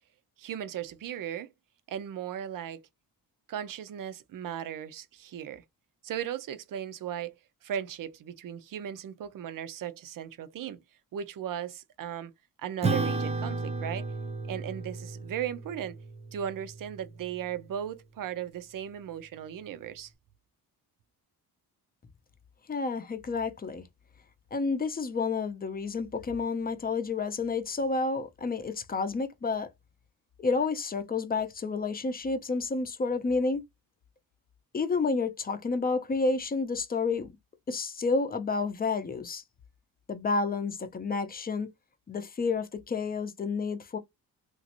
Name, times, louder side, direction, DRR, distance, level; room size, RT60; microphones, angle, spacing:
voice 1, 0.4-1.5 1.9-2.9 3.5-5.6 6.0-7.3 7.6-10.8 11.1-12.3 12.6-14.1 14.5-16.0 16.3-20.1, right 9 dB, 60° right, 0.6 m, -37 dB
Acoustic guitar / Strum, 12.8-17.6, right 3 dB, 15° right, 0.6 m, -34 dB
voice 2, 22.7-23.8 24.5-29.7 30.4-33.6 34.7-37.3 37.7-39.4 40.1-41.7 42.1-44.0, left 4 dB, 25° left, 0.6 m, -30 dB
3.0 x 2.6 x 2.9 m
wide cardioid pair, 140°, 37 cm